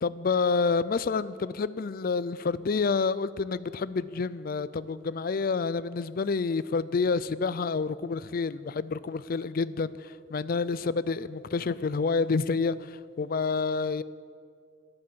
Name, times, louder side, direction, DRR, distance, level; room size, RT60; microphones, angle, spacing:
voice 1, 0.0-14.0, left 4 dB, 50° left, 16 dB, 0.4 m, -28 dB
13.0 x 11.0 x 7.5 m, 2.2 s
head